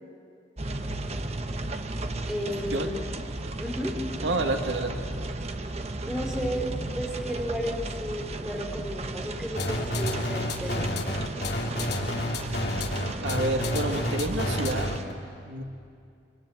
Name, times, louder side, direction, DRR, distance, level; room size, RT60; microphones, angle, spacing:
sound 1, 0.6-15.0, right 2 dB, 35° right, 1.1 m, -35 dB
voice 1, 2.3-2.9 3.6-4.0 6.1-6.7 6.9-10.9, equal, 5° right, -1 dB, 4.0 m, -33 dB
voice 2, 4.2-5.0 13.2-14.9 15.4-15.6, right 2 dB, 85° right, 3 dB, 2.2 m, -28 dB
sound 2, 9.6-15.1, left 1 dB, 60° left, 2.8 m, -29 dB
26.0 x 25.0 x 9.1 m, 2.4 s
head